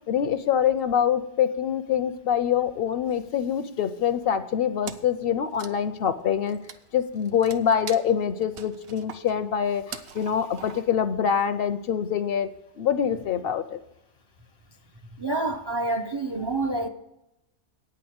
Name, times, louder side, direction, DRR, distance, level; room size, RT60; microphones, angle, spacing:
voice 1, 0.1-6.6 6.9-12.5 12.8-13.8, left 8 dB, 65° left, 0.7 m, -25 dB
Wood, 4.8-5.2 5.5-11.1, right 7 dB, 60° right, 0.8 m, -42 dB
voice 2, 15.2-16.9, right 2 dB, 40° right, 0.4 m, -27 dB
8.9 x 6.0 x 7.9 m
omnidirectional pair, 1.2 m